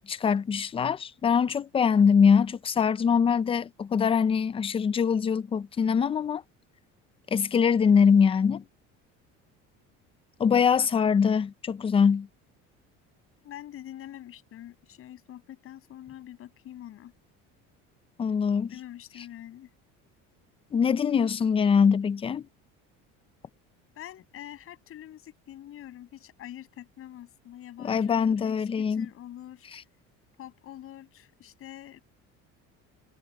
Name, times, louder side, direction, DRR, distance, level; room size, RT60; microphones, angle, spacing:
voice 1, 0.1-6.4 7.3-8.6 10.4-12.3 18.2-18.7 20.7-22.5 27.8-29.1, left 6 dB, 20° left, 0.5 m, -23 dB
voice 2, 13.4-17.1 18.7-19.7 24.0-29.7 30.4-32.0, left 12 dB, 45° left, 7.1 m, -45 dB
cardioid pair, 160°, 31 cm